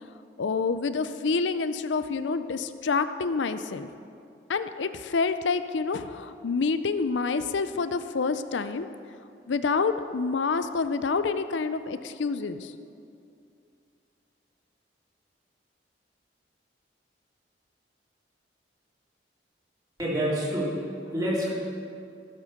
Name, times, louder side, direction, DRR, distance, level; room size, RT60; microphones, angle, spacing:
voice 1, 0.4-3.9 4.5-8.9 9.5-12.7, left 4 dB, 90° left, 11 dB, 0.5 m, -27 dB
voice 2, 20.0-21.5, equal, 20° right, -6 dB, 2.9 m, -28 dB
16.0 x 6.4 x 6.5 m, 2.5 s
head